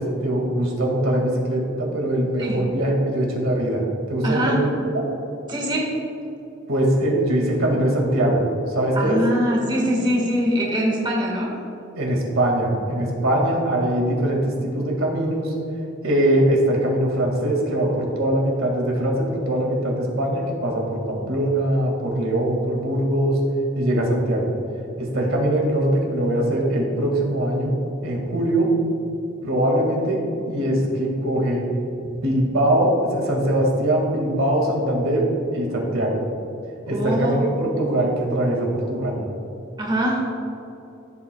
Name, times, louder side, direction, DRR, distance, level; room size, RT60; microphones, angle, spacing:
voice 1, 0.0-3.8 4.1-4.7 4.9-5.0 6.7-8.4 8.7-9.2 12.0-15.5 16.0-23.4 23.7-24.5 25.0-27.8 28.0-28.7 29.4-31.7 32.1-35.2 35.5-36.1 36.9-39.2, right 1 dB, 90° right, -1 dB, 2.1 m, -22 dB
voice 2, 4.2-4.6 5.5-5.9 8.9-11.5 36.9-37.5 39.8-40.2, equal, 20° right, -3 dB, 1.6 m, -23 dB
15.5 x 7.8 x 2.3 m, 2.9 s
head